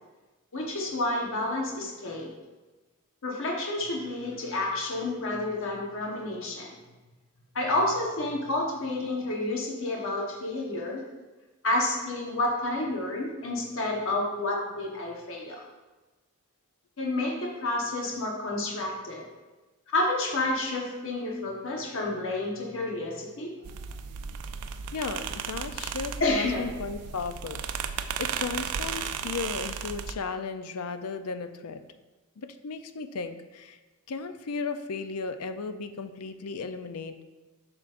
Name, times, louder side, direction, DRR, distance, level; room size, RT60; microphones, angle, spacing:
voice 1, 0.5-2.3 3.2-6.8 7.5-11.0 11.6-15.6 17.0-19.2 19.9-23.5 26.2-26.6, left 2 dB, 60° left, -1 dB, 1.1 m, -30 dB
sound 1, 23.6-30.1, right 7 dB, 90° right, 0.4 m, -35 dB
voice 2, 24.9-31.8 32.4-33.8 34.1-37.2, left 4 dB, 80° left, 9 dB, 0.5 m, -35 dB
7.6 x 6.0 x 2.5 m, 1.2 s
head